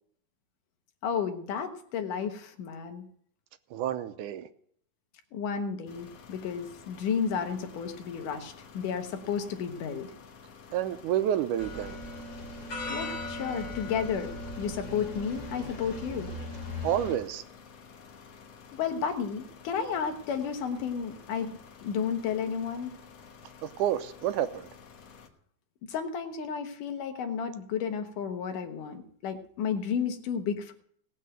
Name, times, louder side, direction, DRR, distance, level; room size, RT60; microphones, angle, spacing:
voice 1, 1.0-3.0 5.3-10.1 12.9-16.3 18.7-23.0 25.9-30.7, left 7 dB, 80° left, 2.8 m, -32 dB
voice 2, 3.7-4.5 10.7-12.0 16.8-17.4 23.6-24.7, right 11 dB, 80° right, 2.2 m, -29 dB
sound 1, 5.9-25.3, left 6 dB, 55° left, 2.2 m, -52 dB
sound 2, 11.6-17.2, left 1 dB, 30° left, 2.6 m, -38 dB
18.0 x 6.5 x 7.7 m
omnidirectional pair, 3.7 m